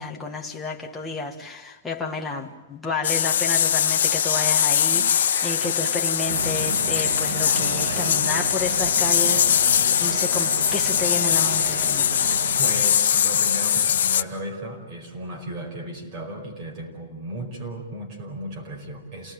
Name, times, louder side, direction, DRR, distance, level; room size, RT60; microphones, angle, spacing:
voice 1, 0.0-9.5 10.0-12.3, left 3 dB, 5° left, -1 dB, 1.6 m, -31 dB
sound 1, 3.0-14.2, left 9 dB, 75° left, 0.9 m, -22 dB
sound 2, 3.7-11.8, right 6 dB, 60° right, 2.0 m, -39 dB
sound 3, 6.3-12.9, right 6 dB, 80° right, 1.4 m, -34 dB
voice 2, 12.6-19.3, right 1 dB, 25° right, 1 dB, 4.8 m, -35 dB
29.0 x 18.5 x 9.0 m, 1.1 s
supercardioid pair, 175°, 0 cm